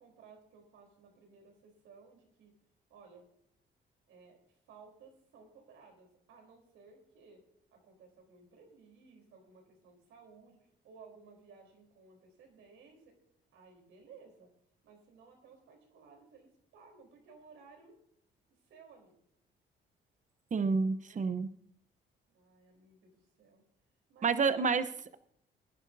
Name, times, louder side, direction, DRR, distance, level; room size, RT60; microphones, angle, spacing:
voice 1, 0.0-2.5 2.9-3.3 4.1-7.4 7.7-13.1 13.5-14.5 14.8-18.0 18.5-19.2 21.0-21.3 22.3-23.6 24.1-25.0, right 5 dB, 85° right, 2 dB, 3.8 m, -58 dB
voice 2, 20.5-21.5 24.2-24.9, right 5 dB, 40° right, 12 dB, 0.9 m, -29 dB
21.0 x 11.0 x 2.7 m, 0.70 s
cardioid pair, 90°, 20 cm